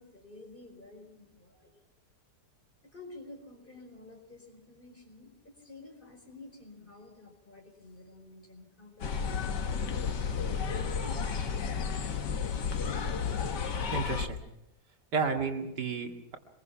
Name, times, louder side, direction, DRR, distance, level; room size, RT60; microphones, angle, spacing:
voice 1, 0.0-1.7 2.8-11.5, left 2 dB, 30° left, 2 dB, 5.0 m, -51 dB
sound 1, 9.0-14.3, left 6 dB, 85° left, 2.0 m, -32 dB
voice 2, 13.9-14.4 15.1-16.4, right 5 dB, 75° right, 3 dB, 2.8 m, -32 dB
24.5 x 22.0 x 5.8 m, 0.86 s
omnidirectional pair, 1.8 m